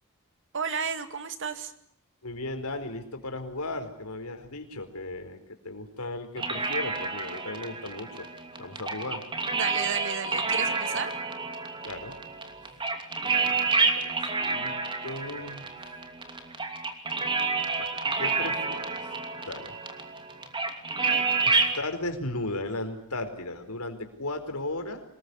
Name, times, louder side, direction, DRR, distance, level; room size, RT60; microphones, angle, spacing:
voice 1, 0.5-1.7 9.5-11.1 21.0-21.2, right 6 dB, 60° right, 9 dB, 2.3 m, -33 dB
voice 2, 2.2-5.4 5.6-8.3 8.6-9.2 11.8-12.2 13.2-13.6 13.9-14.8 15.0-15.7 17.8-17.9 18.2-19.1 19.4-19.7 21.4-25.0, left 2 dB, 85° left, 7 dB, 4.5 m, -36 dB
sound 1, 6.4-21.8, right 4 dB, 20° right, 2.9 m, -29 dB
25.5 x 21.0 x 9.8 m, 0.68 s
head